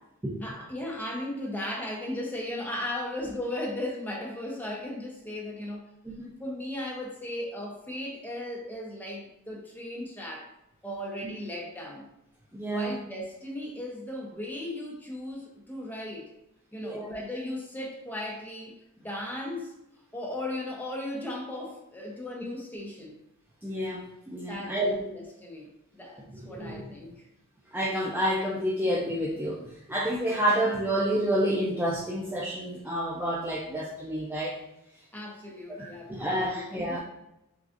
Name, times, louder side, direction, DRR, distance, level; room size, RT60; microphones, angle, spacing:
voice 1, 0.4-5.9 6.4-10.5 10.8-12.1 12.7-16.3 16.7-18.7 19.0-19.7 20.1-23.2 24.5-27.3 35.1-37.0, left 1 dB, 10° left, -2 dB, 0.8 m, -36 dB
voice 2, 12.5-12.9 16.8-17.1 23.6-25.1 26.5-26.9 27.7-34.6 35.7-37.0, equal, 10° right, -4 dB, 0.4 m, -29 dB
6.0 x 2.4 x 2.5 m, 0.86 s
head